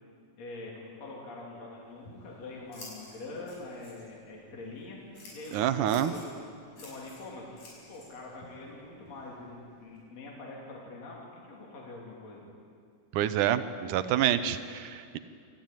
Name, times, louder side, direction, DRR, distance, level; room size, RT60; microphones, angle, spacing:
voice 1, 0.4-6.3 6.8-7.6 7.9-12.5, left 2 dB, 60° left, -3 dB, 4.4 m, -44 dB
Scissors, 1.8-10.0, left 1 dB, 90° left, 7.2 m, -53 dB
voice 2, 5.5-6.1 13.1-15.2, right 11 dB, 90° right, 11 dB, 2.4 m, -27 dB
28.0 x 14.0 x 9.1 m, 2.3 s
omnidirectional pair, 3.5 m